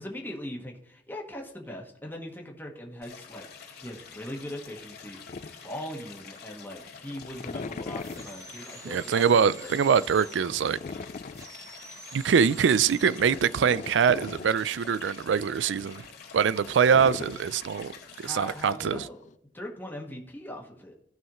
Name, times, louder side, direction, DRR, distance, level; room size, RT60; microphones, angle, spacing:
voice 1, 0.0-3.4 3.8-5.2 5.5-9.7 18.2-20.9, left 1 dB, 10° left, 1.5 m, -40 dB
Stream, 3.0-18.7, left 6 dB, 60° left, 2.4 m, -48 dB
sound 1, 3.9-6.5 6.9-19.3, left 4 dB, 40° left, 0.4 m, -42 dB
sound 2, 8.0-10.6 11.3-13.2, right 2 dB, 20° right, 1.1 m, -47 dB
voice 2, 8.8-10.8 12.1-16.0 16.3-19.0, right 7 dB, 85° right, 0.4 m, -24 dB
16.0 x 5.6 x 3.0 m
head